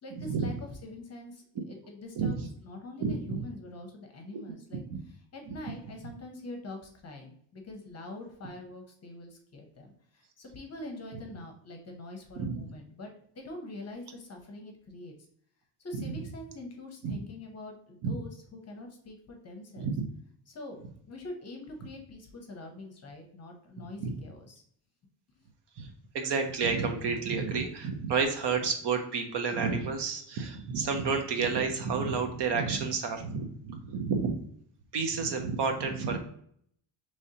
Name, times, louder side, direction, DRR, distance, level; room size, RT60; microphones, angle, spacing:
voice 1, 0.0-15.1 15.8-20.0 20.5-20.8 21.1-24.6 25.4-25.5, left 2 dB, 30° left, 3 dB, 0.7 m, -44 dB
voice 2, 2.2-2.5 3.0-3.4 4.3-4.4 4.9-5.0 12.4-12.7 15.9-16.0 17.0-17.2 18.0-18.1 19.8-20.1 24.0-24.1 25.8-25.9 26.1-34.3 34.9-36.2, right 5 dB, 55° right, 5 dB, 0.8 m, -30 dB
5.2 x 3.2 x 2.7 m, 0.64 s
cardioid pair, 180°, 49 cm